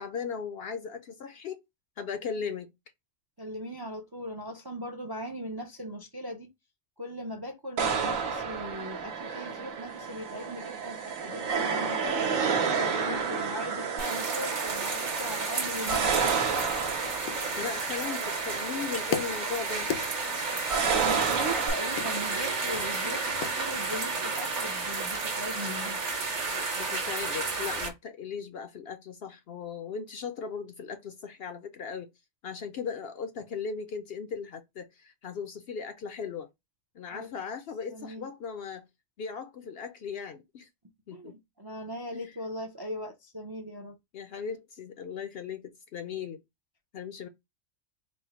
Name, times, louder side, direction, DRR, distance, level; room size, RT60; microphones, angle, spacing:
voice 1, 0.0-1.6 2.0-2.7 12.9-13.3 17.3-19.9 26.5-32.1 32.4-36.5 36.9-38.8 39.2-40.7 41.1-41.4 42.1-42.3 44.1-46.4 46.9-47.3, left 6 dB, 60° left, 0.6 m, -37 dB
voice 2, 3.4-6.5 7.0-12.1 12.5-16.8 20.9-26.0 37.1-37.3 37.9-38.3 41.1-43.9, equal, 35° right, 0.4 m, -39 dB
sound 1, 7.8-21.7, right 6 dB, 85° right, 1.3 m, -31 dB
sound 2, 14.0-27.9, right 4 dB, 60° right, 1.4 m, -32 dB
sound 3, 14.8-24.0, left 7 dB, 85° left, 1.1 m, -41 dB
4.3 x 2.0 x 4.2 m
omnidirectional pair, 1.4 m